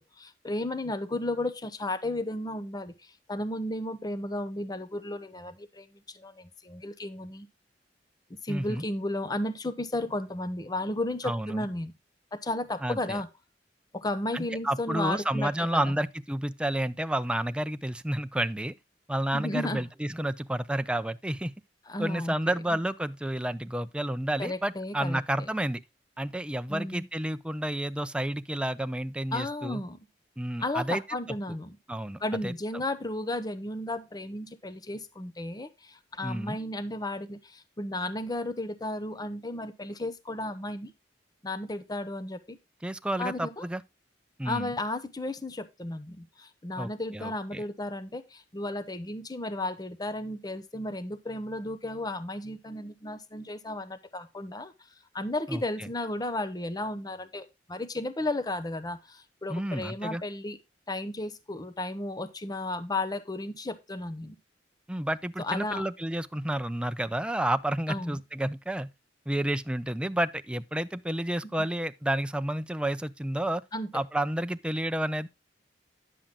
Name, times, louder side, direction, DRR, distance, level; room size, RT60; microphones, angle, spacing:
voice 1, 0.0-7.5 8.4-11.9 12.3-13.3 13.9-15.9 19.3-19.8 21.9-22.5 24.4-25.5 26.7-27.1 29.3-30.0 30.6-31.8 32.2-40.9 41.4-42.6 43.2-43.6 44.4-54.7 55.1-60.6 60.9-64.4 65.4-65.9 67.9-68.2 73.7-73.9, left 1 dB, 20° left, 0.7 m, -34 dB
voice 2, 8.5-8.8 11.2-11.7 12.8-13.2 14.3-18.7 19.1-21.5 22.0-25.8 26.2-29.8 30.4-31.0 31.5-31.6 31.9-32.5 36.2-36.6 42.8-43.8 44.4-44.7 46.8-47.6 55.5-55.6 59.5-60.2 64.9-68.9 69.3-73.6 73.9-75.3, right 1 dB, 5° right, 0.4 m, -30 dB
10.0 x 7.5 x 3.7 m
head